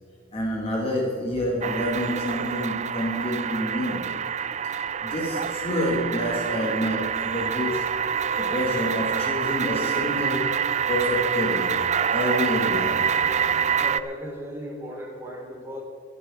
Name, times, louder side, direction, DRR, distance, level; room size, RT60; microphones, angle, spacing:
voice 1, 0.3-4.1 5.0-8.0 8.4-10.6 10.9-11.8 12.1-13.1, left 1 dB, 30° left, -2 dB, 2.0 m, -28 dB
sound 1, 1.6-14.0, right 7 dB, 35° right, 0.4 m, -26 dB
voice 2, 13.7-15.8, equal, 15° right, -2 dB, 3.4 m, -36 dB
22.0 x 11.0 x 3.7 m, 2.5 s
head